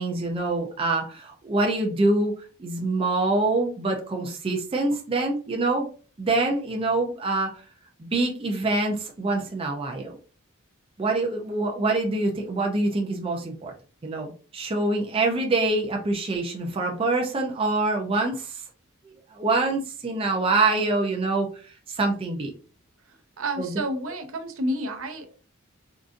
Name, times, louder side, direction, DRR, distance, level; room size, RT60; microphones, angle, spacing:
voice 1, 0.0-5.9 6.2-7.6 8.0-10.2 11.0-13.7 14.0-18.6 19.3-22.5 23.6-23.7, right 2 dB, 25° right, 1 dB, 0.4 m, -25 dB
voice 2, 23.4-25.3, right 1 dB, 70° right, 6 dB, 0.6 m, -30 dB
3.8 x 2.4 x 2.5 m, 0.39 s
head